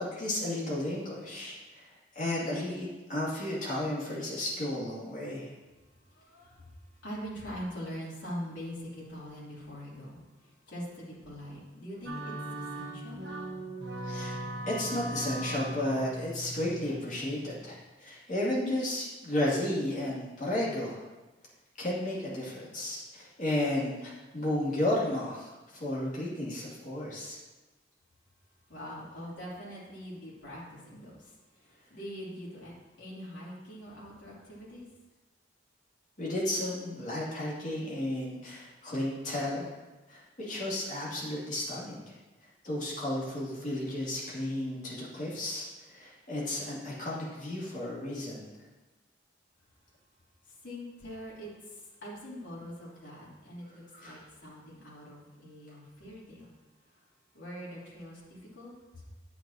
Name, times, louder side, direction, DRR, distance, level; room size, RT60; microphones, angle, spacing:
voice 1, 0.0-1.8 2.1-5.5 14.0-14.4 14.7-21.0 21.8-27.4 36.2-39.7 40.1-42.2 42.6-48.5 53.9-54.1, left 1 dB, 40° left, -6 dB, 2.4 m, -33 dB
voice 2, 6.1-13.2 28.7-34.9 50.4-56.6 56.9-57.0 57.3-59.1, equal, 80° left, -7 dB, 3.1 m, -43 dB
sound 1, 12.1-17.8, right 1 dB, 65° right, 1.1 m, -39 dB
9.1 x 9.0 x 2.8 m, 1.2 s
head